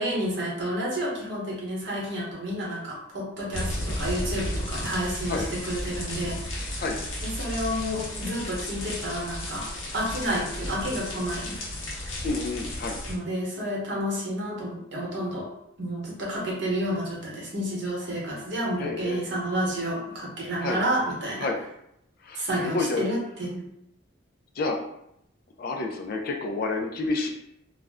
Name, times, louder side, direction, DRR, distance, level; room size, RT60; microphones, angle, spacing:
voice 1, 0.0-6.8 7.2-9.7 9.9-11.6 13.1-15.5 15.8-21.5 22.3-23.7, equal, 55° right, -4 dB, 0.9 m, -30 dB
sound 1, 3.5-13.1, left 1 dB, 75° left, 0.8 m, -33 dB
voice 2, 12.2-13.0 18.8-19.3 20.6-20.8 21.4-21.6 22.2-23.1 24.6-24.8 25.6-27.3, left 3 dB, 45° left, 2 dB, 0.3 m, -29 dB
2.4 x 2.1 x 3.4 m, 0.78 s
head